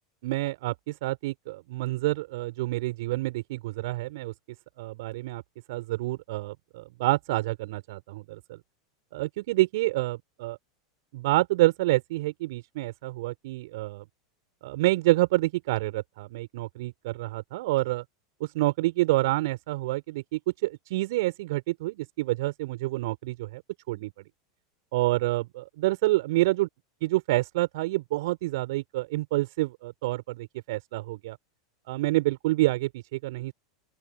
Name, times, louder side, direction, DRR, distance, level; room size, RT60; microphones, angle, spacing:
voice 1, 0.2-4.3 4.8-5.4 5.7-8.6 9.1-10.6 11.1-14.0 14.6-18.0 18.4-23.6 23.9-24.1 24.9-26.7 27.0-31.4 31.9-33.5, right 19 dB, 60° right, 5.6 m, -28 dB
open air
hypercardioid pair, 90°, 2 cm